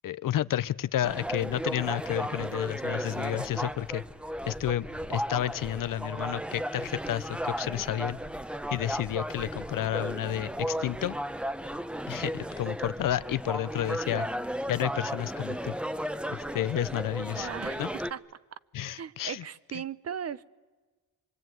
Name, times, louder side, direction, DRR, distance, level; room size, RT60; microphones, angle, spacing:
voice 1, 0.0-4.0 4.5-8.2 8.7-11.2 12.1-14.3 14.7-15.8 16.3-17.5 17.8-17.9 18.7-19.4, left 12 dB, 60° left, 16 dB, 0.8 m, -31 dB
sound 1, 1.0-18.1, equal, 5° right, 1.0 m, -35 dB
voice 2, 17.4-18.2 18.8-20.4, right 8 dB, 40° right, 17 dB, 0.9 m, -38 dB
25.5 x 24.5 x 9.4 m, 1.3 s
cardioid pair, 95°, 38 cm